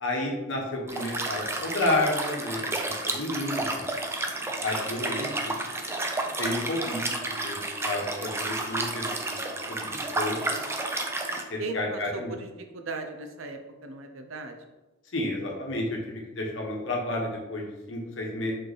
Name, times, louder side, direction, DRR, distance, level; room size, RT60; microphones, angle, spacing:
voice 1, 0.0-3.8 4.6-5.6 6.4-7.6 7.8-9.4 9.7-10.4 11.5-12.4 15.1-18.5, left 1 dB, 65° left, -1 dB, 1.1 m, -31 dB
Liquid, 0.9-11.4, right 2 dB, 15° right, 0.4 m, -31 dB
voice 2, 10.3-10.9 11.6-14.6, right 3 dB, 90° right, 5 dB, 0.6 m, -38 dB
4.3 x 3.1 x 4.0 m, 1.1 s
head